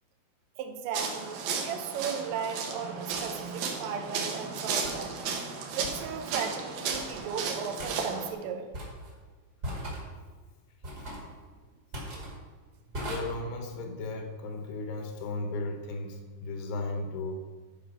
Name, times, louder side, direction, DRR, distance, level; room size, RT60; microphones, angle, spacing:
voice 1, 0.6-5.2 5.8-8.7, right 7 dB, 85° right, 5 dB, 3.5 m, -36 dB
sound 1, 0.9-8.3, right 5 dB, 70° right, 2.3 m, -34 dB
sound 2, 3.1-3.3 4.8-5.0 5.8-6.1 6.9-7.3 7.8-7.9 8.7-9.1 9.6-10.1 10.8-11.3 11.9-12.3 12.9-13.2, equal, 35° right, 1.6 m, -38 dB
voice 2, 13.1-17.3, left 2 dB, 75° left, 4 dB, 3.4 m, -35 dB
14.0 x 4.8 x 5.7 m, 1.4 s
omnidirectional pair, 5.7 m